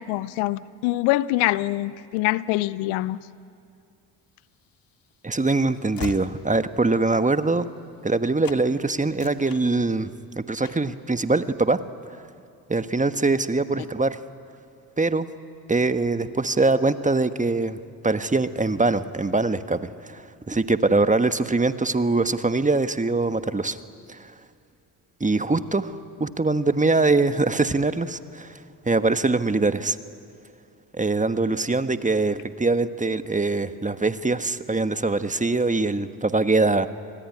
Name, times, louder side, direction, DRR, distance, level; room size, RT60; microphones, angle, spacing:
voice 1, 0.0-3.2, left 17 dB, 80° left, 19 dB, 0.8 m, -24 dB
Train / Slam, 4.5-8.2 8.4-8.7 9.0-10.2 10.6-11.0, left 6 dB, 45° left, 2.1 m, -41 dB
voice 2, 5.2-7.7 8.0-10.1 10.4-11.8 12.7-14.2 15.0-15.3 15.7-17.8 18.0-23.8 24.1-24.3 25.2-28.6 28.9-30.0 30.9-36.9, right 3 dB, 15° right, 11 dB, 1.3 m, -23 dB
29.0 x 20.5 x 9.9 m, 2.4 s
hypercardioid pair, 55°, 47 cm